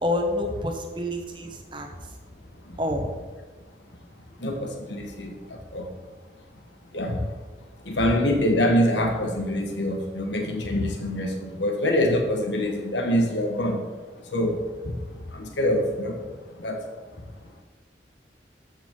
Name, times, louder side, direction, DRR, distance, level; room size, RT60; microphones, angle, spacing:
voice 1, 0.0-1.9 2.8-3.2, left 1 dB, 25° right, 3 dB, 1.1 m, -28 dB
voice 2, 4.4-5.3 5.7-5.9 6.9-7.2 7.9-13.8 14.3-14.6 15.3-16.2 16.6-16.8, left 1 dB, 85° left, 3 dB, 1.6 m, -24 dB
14.0 x 5.9 x 3.9 m, 1.3 s
head